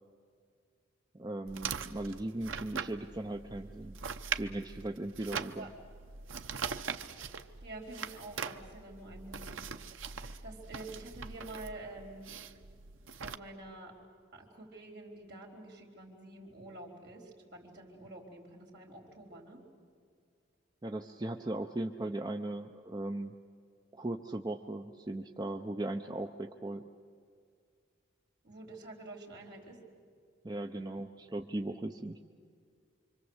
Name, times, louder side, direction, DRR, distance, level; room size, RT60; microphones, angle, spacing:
voice 1, 1.1-4.0 4.4-5.7 20.8-23.3 23.9-26.8 30.4-32.2, right 1 dB, 20° right, 5 dB, 0.6 m, -38 dB
sound 1, 1.5-13.4, right 6 dB, 80° right, 0.9 m, -42 dB
voice 2, 7.6-9.6 10.1-12.3 13.1-14.0 14.3-19.6 28.4-29.8, right 2 dB, 55° right, 0 dB, 4.2 m, -48 dB
26.5 x 25.0 x 8.0 m, 2.2 s
head